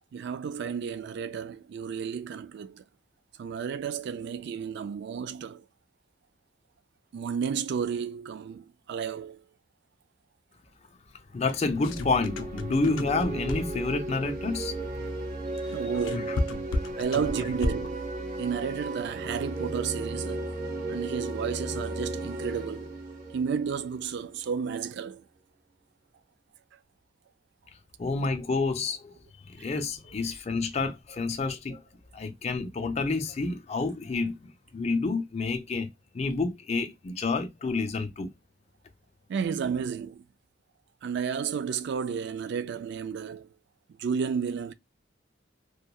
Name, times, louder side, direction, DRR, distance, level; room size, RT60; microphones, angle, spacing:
voice 1, 0.1-2.8 3.4-5.6 7.1-9.4 15.7-16.5 17.0-18.0 18.4-20.5 20.9-22.9 23.3-25.2 28.1-28.3 29.6-29.7 39.3-40.3 41.0-43.5 44.0-44.7, right 6 dB, 60° right, 0.3 m, -32 dB
voice 2, 11.3-14.7 15.8-15.9 16.3-16.4 28.0-29.1 29.5-31.8 32.1-35.9 36.1-38.3, left 3 dB, 35° left, 0.4 m, -29 dB
sound 1, 11.5-13.9 15.6-18.0, left 2 dB, 90° left, 0.5 m, -33 dB
sound 2, 11.7-24.3, right 2 dB, 40° right, 0.7 m, -35 dB
2.9 x 2.2 x 2.2 m
head